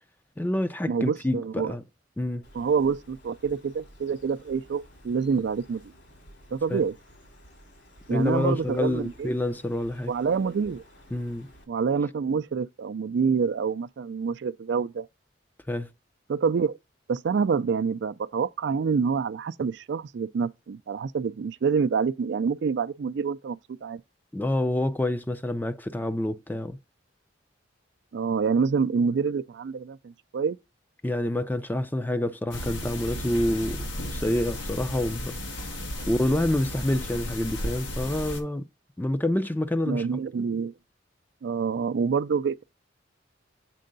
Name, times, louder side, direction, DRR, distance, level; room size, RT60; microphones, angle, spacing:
voice 1, 0.4-1.8 2.2-2.4 6.7-6.8 8.1-10.1 11.1-11.5 15.7-15.9 24.3-26.8 31.0-33.8 34.1-35.3 36.1-38.6 39.0-40.2, left 1 dB, 10° left, 0.4 m, -27 dB
voice 2, 0.9-1.7 2.5-5.8 6.5-6.9 8.1-9.3 10.1-10.8 11.7-15.1 16.3-16.8 17.1-24.0 28.1-30.6 36.0-36.1 39.9-40.7 41.4-42.6, right 5 dB, 60° right, 0.4 m, -27 dB
Bird, 2.4-11.6, equal, 65° left, 2.8 m, -53 dB
sound 1, 32.5-38.4, left 1 dB, 90° left, 1.5 m, -34 dB
7.6 x 4.5 x 3.9 m
head